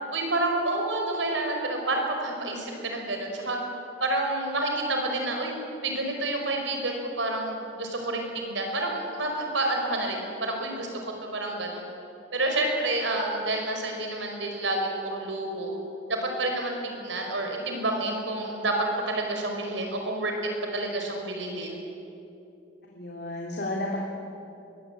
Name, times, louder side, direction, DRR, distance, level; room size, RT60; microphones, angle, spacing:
voice 1, 0.1-3.6 4.0-5.5 5.8-11.8 12.3-15.7 16.1-18.7 19.1-20.3 20.7-21.8, right 2 dB, 85° right, 2 dB, 5.3 m, -29 dB
voice 2, 22.9-24.0, left 1 dB, 60° left, -2 dB, 3.1 m, -32 dB
22.5 x 22.5 x 9.0 m, 2.8 s
head